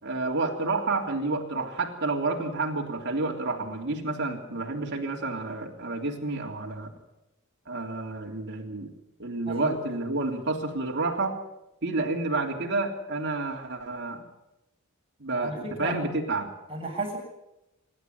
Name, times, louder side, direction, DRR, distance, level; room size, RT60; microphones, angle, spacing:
voice 1, 0.0-6.9 7.7-8.9 9.2-11.4 11.8-14.2 15.2-16.5, right 3 dB, 55° right, 0 dB, 3.5 m, -30 dB
voice 2, 15.3-16.0 16.7-17.2, right 2 dB, 25° right, -1 dB, 8.0 m, -33 dB
26.0 x 11.5 x 10.0 m, 0.92 s
head